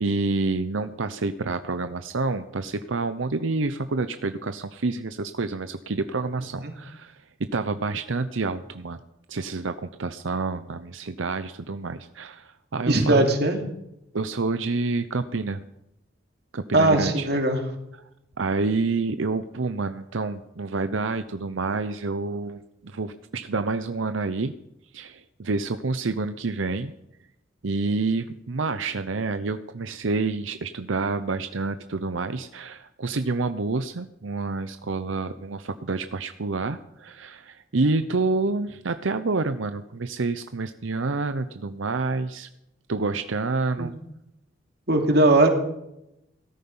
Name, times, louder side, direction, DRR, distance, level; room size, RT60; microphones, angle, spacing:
voice 1, 0.0-9.0 9.3-13.2 14.1-15.6 16.5-17.3 17.9-18.0 18.4-24.5 24.9-26.9 27.6-42.5 42.9-44.0, right 3 dB, 90° right, 10 dB, 0.8 m, -28 dB
voice 2, 12.9-13.6 16.7-17.6 43.8-43.9 44.9-45.5, right 2 dB, 55° right, 3 dB, 2.8 m, -19 dB
17.5 x 13.5 x 5.5 m, 0.84 s
head